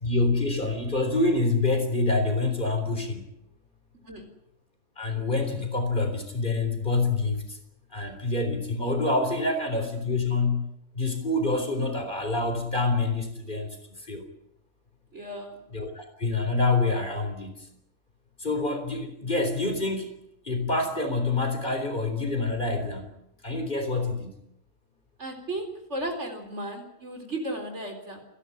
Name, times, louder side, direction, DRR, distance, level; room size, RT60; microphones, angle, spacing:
voice 1, 0.0-3.2 5.0-7.4 7.9-10.6 11.0-13.7 14.1-14.2 15.7-17.6 18.4-20.2 20.5-23.1 23.4-24.4, left 3 dB, 35° left, 5 dB, 4.1 m, -26 dB
voice 2, 15.1-15.6 17.2-17.3 25.2-28.2, right 1 dB, 55° right, 5 dB, 4.4 m, -35 dB
29.0 x 11.5 x 9.9 m, 0.78 s
omnidirectional pair, 1.4 m